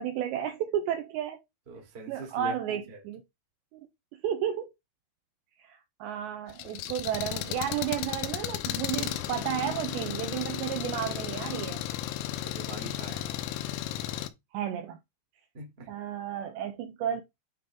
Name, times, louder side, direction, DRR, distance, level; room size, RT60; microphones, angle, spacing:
voice 1, 0.0-1.4 2.1-3.2 3.7-3.8 4.2-4.7 5.6-11.8 13.1-13.3 14.5-15.0 15.9-17.2, right 10 dB, 80° right, 2.6 m, -32 dB
voice 2, 1.7-2.5 2.9-3.0 12.4-13.3 15.5-15.9, right 2 dB, 30° right, 1.1 m, -42 dB
Engine, 6.5-14.3, left 13 dB, 90° left, 3.3 m, -34 dB
9.0 x 3.6 x 3.7 m
omnidirectional pair, 5.9 m